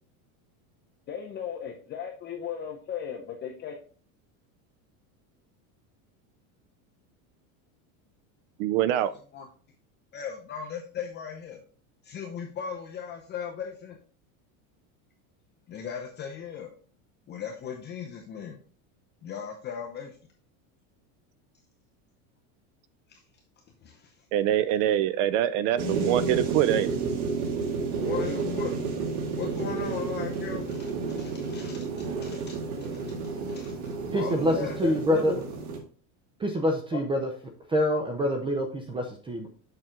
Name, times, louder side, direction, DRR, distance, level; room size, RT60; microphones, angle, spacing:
voice 1, 1.1-3.7 9.3-9.5 10.1-11.6 12.0-14.0 15.7-16.7 17.3-18.6 19.2-20.2 23.1-23.2 23.8-24.1 28.0-28.8 29.4-31.9 32.2-32.6 32.9-33.1 33.5-35.4 36.9-37.0, left 7 dB, 25° left, 2 dB, 0.7 m, -37 dB
voice 2, 8.6-9.1 24.3-26.9, right 11 dB, 60° right, 16 dB, 0.6 m, -24 dB
sound 1, 25.8-35.8, right 4 dB, 90° right, 2.2 m, -31 dB
voice 3, 34.1-34.5 34.8-35.3 36.4-37.3 37.7-39.5, equal, 10° right, 4 dB, 0.6 m, -26 dB
6.8 x 5.9 x 3.7 m, 0.43 s
supercardioid pair, 155°, 42 cm